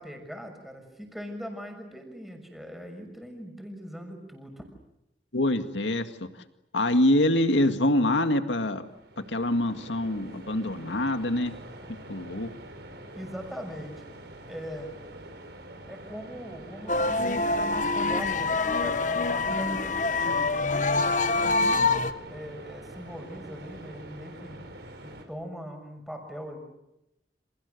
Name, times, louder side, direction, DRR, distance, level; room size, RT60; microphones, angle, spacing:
voice 1, 0.0-4.7 13.2-14.1 14.5-14.9 15.9-20.6 21.3-21.9 22.3-24.6 25.0-26.6, equal, ahead, 3 dB, 6.3 m, -41 dB
voice 2, 5.3-6.3 6.7-8.8 9.2-11.5 12.1-12.5, left 1 dB, 85° left, 7 dB, 2.1 m, -25 dB
sound 1, 8.6-25.3, right 1 dB, 65° right, 5.1 m, -45 dB
sound 2, 16.9-22.1, left 3 dB, 45° left, 1.2 m, -25 dB
30.0 x 28.0 x 6.7 m, 0.86 s
head